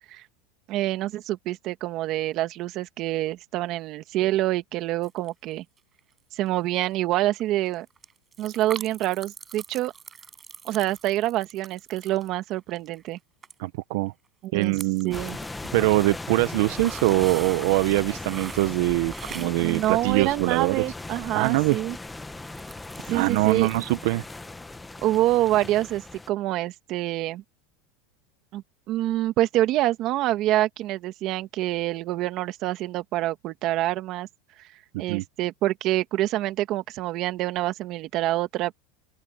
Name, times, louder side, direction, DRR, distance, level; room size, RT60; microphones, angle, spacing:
voice 1, 0.7-5.6 6.3-7.9 8.4-9.9 10.6-13.2 14.4-14.7 15.0-15.4 19.4-22.0 23.1-23.7 25.0-27.4 28.5-34.3 35.0-38.7, right 15 dB, 40° right, 1.8 m, -26 dB
sound 1, 5.0-5.5 5.8-6.2 6.5-6.6 6.8-6.9 7.1-13.2 13.4-13.5 13.8-13.9 14.4-15.7 16.1-20.6 21.6-21.7 22.1-24.1 24.4-24.5, right 6 dB, 20° right, 6.6 m, -44 dB
voice 2, 13.6-14.1 14.5-15.2 15.7-20.8 21.3-21.8 23.1-24.2 35.1-35.2, right 19 dB, 65° right, 0.8 m, -23 dB
sound 2, 15.1-26.3, left 2 dB, 5° left, 1.0 m, -38 dB
open air
supercardioid pair, 150°, 0 cm